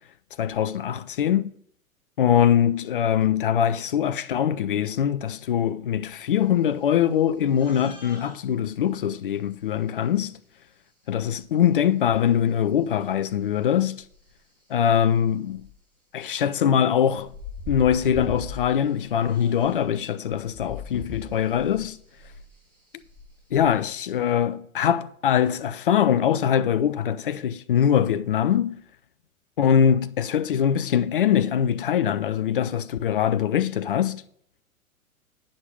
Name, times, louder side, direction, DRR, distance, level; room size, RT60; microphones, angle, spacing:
voice 1, 0.4-1.5 2.2-10.3 11.1-14.0 14.7-15.7 16.1-17.3 17.7-22.0 23.5-28.8 29.6-34.2, left 9 dB, 40° left, 0.4 m, -22 dB
sound 1, 7.5-8.4 9.6-9.7 11.4-11.5 12.4-12.5 14.0-14.3 14.8-14.9 15.3-15.7 17.1-19.9 20.3-23.8, left 3 dB, 5° left, 3.9 m, -40 dB
8.7 x 6.4 x 5.2 m
figure-of-eight pair, 110°, 43 cm